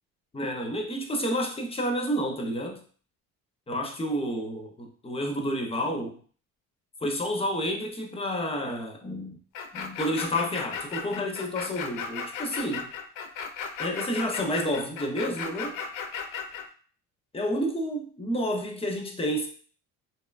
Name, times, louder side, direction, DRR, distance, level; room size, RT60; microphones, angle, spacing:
voice 1, 0.3-2.8 3.7-6.2 7.0-9.4 9.7-12.9 13.8-15.8 17.3-19.5, equal, 15° left, 2 dB, 0.5 m, -30 dB
sound 1, 9.5-16.6, left 6 dB, 65° left, 0.5 m, -35 dB
2.8 x 2.2 x 2.2 m, 0.43 s
cardioid pair, 100°, 34 cm